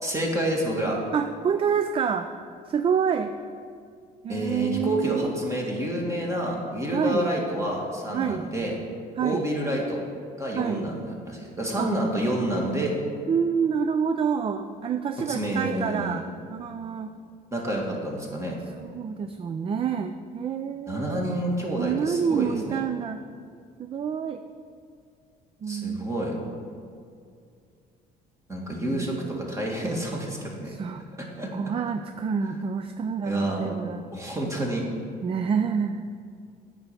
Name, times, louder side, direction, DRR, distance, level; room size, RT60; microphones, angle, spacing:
voice 1, 0.0-1.0 4.3-8.8 9.2-10.0 10.4-12.9 15.3-16.2 17.5-18.6 20.9-22.8 25.7-26.3 28.5-30.8 31.4-31.5 32.4-32.6 33.2-33.7 34.1-34.9, right 1 dB, 15° right, -2 dB, 2.1 m, -28 dB
voice 2, 1.1-2.3 2.7-3.3 4.2-5.4 6.9-7.4 8.1-8.5 9.2-9.4 10.5-10.9 11.8-11.9 13.3-17.1 18.8-21.3 21.8-23.2 23.8-24.4 25.6-26.1 28.8-29.3 30.7-31.0 31.5-34.0 35.2-36.1, right 7 dB, 30° right, 9 dB, 0.4 m, -28 dB
8.8 x 5.8 x 6.7 m, 2.3 s
cardioid pair, 110°, 17 cm